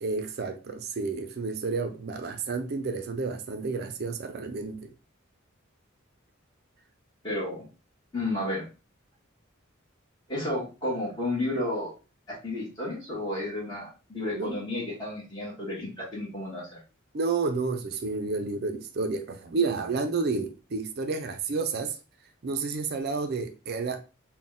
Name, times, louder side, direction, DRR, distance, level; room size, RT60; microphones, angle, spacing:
voice 1, 0.0-4.9 14.3-14.6 17.1-22.0 22.4-24.0, right 4 dB, 50° right, 0.4 m, -30 dB
voice 2, 7.2-7.6 8.1-8.6 10.3-11.9 12.3-16.8, left 1 dB, 20° left, 1.3 m, -32 dB
4.0 x 2.1 x 3.6 m
head